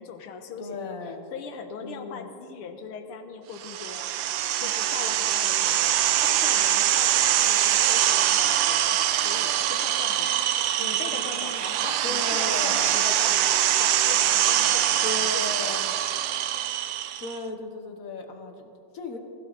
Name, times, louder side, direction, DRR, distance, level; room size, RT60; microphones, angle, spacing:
voice 1, 0.0-0.9 1.3-4.2 4.6-16.1, left 6 dB, 90° left, 7 dB, 2.0 m, -40 dB
voice 2, 0.6-1.3 1.8-2.3 11.0-11.6 12.0-12.8 15.0-15.9 17.2-19.2, left 3 dB, 45° left, 5 dB, 1.5 m, -36 dB
sound 1, 3.6-17.4, right 11 dB, 70° right, 1.3 m, -23 dB
19.0 x 15.5 x 4.1 m, 2.6 s
omnidirectional pair, 2.3 m